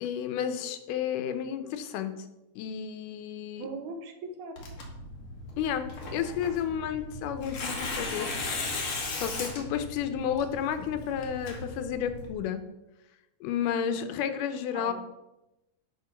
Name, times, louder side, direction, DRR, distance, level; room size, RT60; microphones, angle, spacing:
voice 1, 0.0-2.2 2.6-3.7 5.6-8.4 9.2-12.6 13.4-14.9, left 8 dB, 85° left, 9 dB, 2.3 m, -31 dB
voice 2, 3.6-4.6 14.7-14.9, right 3 dB, 75° right, 4 dB, 2.5 m, -39 dB
Tearing, 4.6-12.3, left 3 dB, 50° left, 2.1 m, -37 dB
10.5 x 3.8 x 5.8 m, 0.96 s
omnidirectional pair, 3.6 m